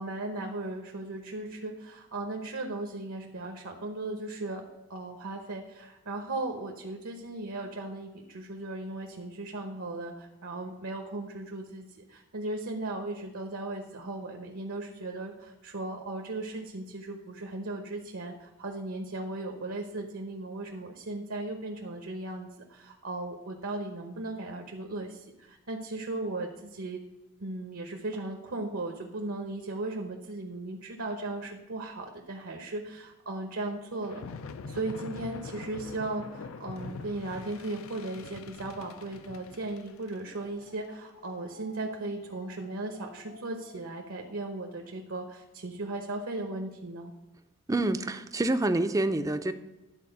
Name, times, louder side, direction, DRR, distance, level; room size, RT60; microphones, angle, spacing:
voice 1, 0.0-4.6 4.9-27.0 27.4-34.2 34.7-47.1, right 2 dB, 70° right, 2 dB, 0.9 m, -37 dB
sound 1, 34.0-44.6, left 4 dB, 70° left, 0.5 m, -46 dB
voice 2, 47.7-49.5, right 2 dB, 15° right, 8 dB, 0.5 m, -27 dB
11.0 x 4.3 x 6.6 m, 1.0 s
head